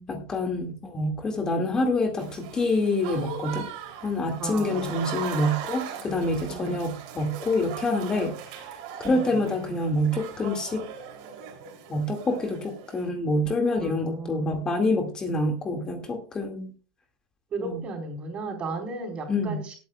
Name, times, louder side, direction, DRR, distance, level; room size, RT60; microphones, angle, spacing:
voice 1, 0.1-3.7 4.0-8.4 9.0-10.8 11.9-16.7 17.6-17.8 19.3-19.6, left 2 dB, 20° left, 4 dB, 2.1 m, -26 dB
Applause / Crowd, 2.2-13.1, right 8 dB, 75° right, 3.2 m, -39 dB
voice 2, 4.4-4.9 6.5-6.8 9.1-9.4 13.8-14.9 17.5-19.7, right 3 dB, 35° right, 3 dB, 4.3 m, -35 dB
19.5 x 9.3 x 2.3 m, 0.38 s
supercardioid pair, 130°, 3 cm